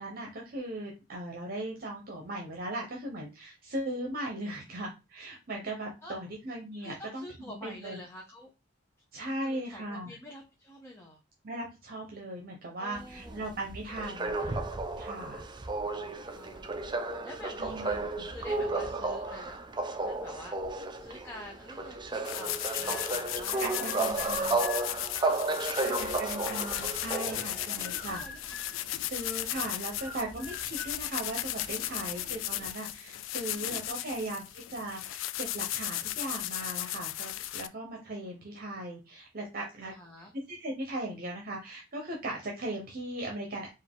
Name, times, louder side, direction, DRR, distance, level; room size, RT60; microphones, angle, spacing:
voice 1, 0.0-7.2 7.6-8.0 9.1-10.1 11.4-14.6 15.0-15.5 17.6-18.1 23.6-24.6 26.0-28.2 29.0-39.9 40.3-43.7, right 1 dB, 50° right, 0 dB, 0.9 m, -38 dB
voice 2, 6.8-8.5 9.4-11.2 12.8-13.5 15.8-16.8 17.2-19.6 20.0-24.8 25.3-26.4 27.3-28.9 31.7-32.5 39.8-40.3, left 1 dB, 15° left, -2 dB, 0.8 m, -48 dB
sound 1, 13.0-28.2 29.4-31.2 31.6-31.7 31.9-32.7, right 3 dB, 25° right, 0.5 m, -33 dB
sound 2, 22.2-37.7, left 14 dB, 80° left, 0.3 m, -36 dB
sound 3, 22.8-23.4 23.7-27.6 27.8-28.8 29.2-31.0, left 4 dB, 65° left, 0.9 m, -46 dB
4.7 x 2.6 x 3.6 m, 0.26 s
head